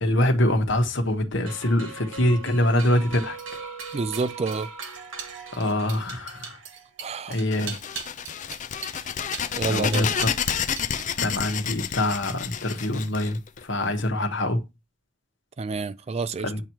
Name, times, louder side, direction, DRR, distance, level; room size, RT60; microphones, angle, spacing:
voice 1, 0.0-3.4 5.5-6.6 7.3-7.7 9.7-10.1 11.2-14.6 16.4-16.6, left 1 dB, 60° left, 1.3 m, -24 dB
sound 1, 1.5-7.0, right 4 dB, 80° right, 2.1 m, -40 dB
sound 2, 2.6-11.1 11.4-11.8, right 7 dB, 60° right, 1.0 m, -40 dB
voice 2, 3.9-4.7 7.0-7.4 9.6-10.1 15.6-16.5, right 4 dB, 30° right, 0.3 m, -29 dB
sound 3, 7.5-14.0, left 8 dB, 35° left, 0.5 m, -30 dB
8.8 x 3.1 x 5.6 m
head